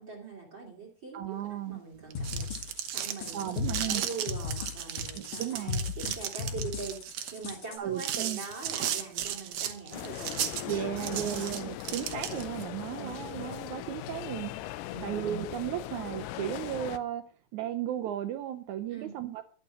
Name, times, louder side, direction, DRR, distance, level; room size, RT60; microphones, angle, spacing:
voice 1, 0.0-1.2 1.5-11.2 13.0-13.2 14.9-15.2 18.9-19.1, right 4 dB, 35° right, 2 dB, 3.0 m, -43 dB
voice 2, 1.1-1.8 3.3-4.0 5.1-5.8 7.8-8.4 10.7-14.5 15.0-17.2 17.5-19.4, right 11 dB, 85° right, 9 dB, 1.7 m, -35 dB
sound 1, 2.0-12.6, right 10 dB, 65° right, 1.8 m, -35 dB
sound 2, 2.2-7.8, left 5 dB, 60° left, 4.1 m, -36 dB
sound 3, 9.9-17.0, left 13 dB, 75° left, 2.1 m, -39 dB
11.5 x 8.3 x 6.1 m, 0.41 s
omnidirectional pair, 4.2 m